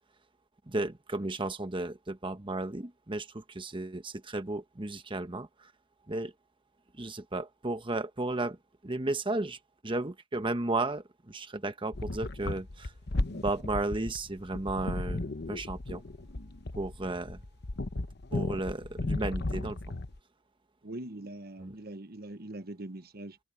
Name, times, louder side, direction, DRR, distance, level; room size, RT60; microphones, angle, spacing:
voice 1, 0.7-5.7 6.1-6.3 6.9-8.6 8.8-12.9 13.3-16.0 16.7-17.4 18.3-20.0 21.6-21.7, right 2 dB, 25° right, 1.1 m, -34 dB
sound 1, 11.9-20.2, left 2 dB, 60° left, 1.0 m, -35 dB
voice 2, 20.8-23.4, right 1 dB, 50° right, 1.2 m, -42 dB
head